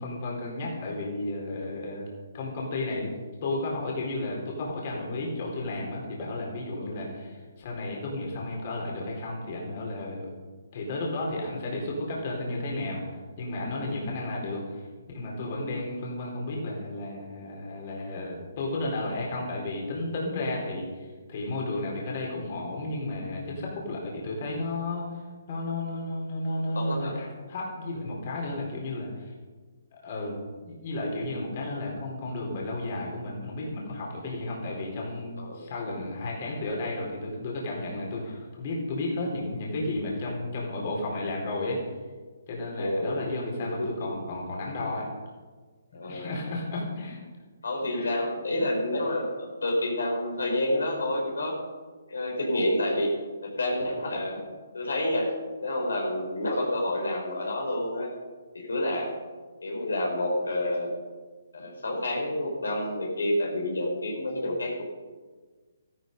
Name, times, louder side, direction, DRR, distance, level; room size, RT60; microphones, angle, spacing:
voice 1, 0.0-2.1 2.3-3.1 3.4-10.3 10.7-14.8 15.1-25.1 25.5-29.3 29.9-41.8 42.5-45.1 45.9-47.2 47.9-48.1, left 2 dB, 45° left, -2 dB, 4.1 m, -33 dB
voice 2, 26.7-27.1 35.4-35.6 42.8-43.2 43.6-44.1 45.9-46.2 47.6-51.6 52.1-53.1 53.4-54.4 54.7-55.3 55.6-58.1 58.5-59.1 59.6-60.9 61.5-64.8, left 1 dB, 80° left, 0 dB, 4.6 m, -29 dB
13.5 x 12.5 x 5.4 m, 1.4 s
hypercardioid pair, 145°, 0 cm